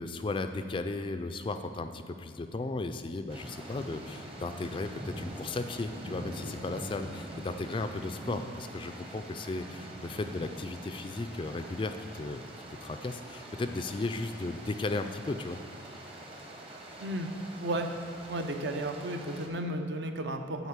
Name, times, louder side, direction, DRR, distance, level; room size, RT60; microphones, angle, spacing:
voice 1, 0.0-12.4 12.8-15.6, left 3 dB, 25° left, 8 dB, 0.3 m, -35 dB
sound 1, 3.3-19.5, right 1 dB, 30° right, 1.0 m, -45 dB
voice 2, 17.6-17.9 18.3-20.7, right 1 dB, 65° right, 5 dB, 0.7 m, -34 dB
8.0 x 4.7 x 7.3 m, 2.4 s
head